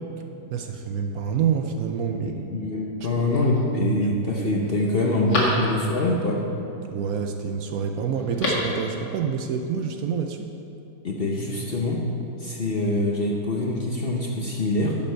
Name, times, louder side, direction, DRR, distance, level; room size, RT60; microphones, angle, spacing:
voice 1, 0.5-2.3 3.0-3.3 3.8-4.0 6.8-10.5, right 7 dB, 70° right, 5 dB, 1.0 m, -27 dB
voice 2, 2.1-6.4 11.0-12.0 12.4-15.0, left 2 dB, 45° left, -1 dB, 0.8 m, -24 dB
Telephone, 3.0-3.6 4.1-4.2 4.6-6.1 8.1-8.8 9.1-9.2, left 1 dB, 75° left, 2.6 m, -30 dB
11.0 x 7.7 x 4.5 m, 2.8 s
omnidirectional pair, 1.8 m